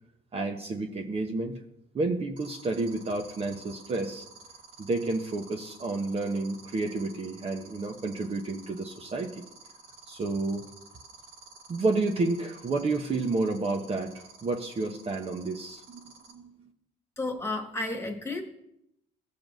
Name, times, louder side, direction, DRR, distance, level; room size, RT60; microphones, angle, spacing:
voice 1, 0.3-1.6 1.9-4.2 4.8-9.5 10.1-10.7 11.7-16.4, right 3 dB, 35° right, 3 dB, 1.0 m, -30 dB
sound 1, 2.4-16.3, right 5 dB, 85° right, 2.3 m, -50 dB
voice 2, 17.2-18.4, left 2 dB, 15° left, 3 dB, 1.6 m, -32 dB
18.5 x 6.9 x 2.7 m, 0.82 s
cardioid pair, 110°, 17 cm